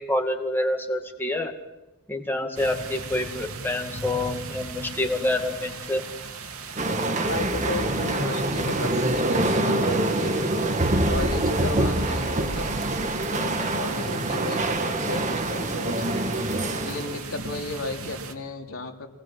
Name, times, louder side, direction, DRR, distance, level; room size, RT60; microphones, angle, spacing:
voice 1, 0.0-1.5 2.1-6.0, left 1 dB, 10° left, 2 dB, 2.2 m, -27 dB
sound 1, 2.6-18.3, right 3 dB, 80° right, 2.9 m, -36 dB
sound 2, 6.8-17.2, right 1 dB, 35° right, 1.8 m, -25 dB
voice 2, 7.2-10.5 11.1-12.7 13.2-16.2 16.8-19.1, left 2 dB, 75° left, 1 dB, 3.1 m, -34 dB
26.5 x 19.5 x 7.7 m, 1.0 s
head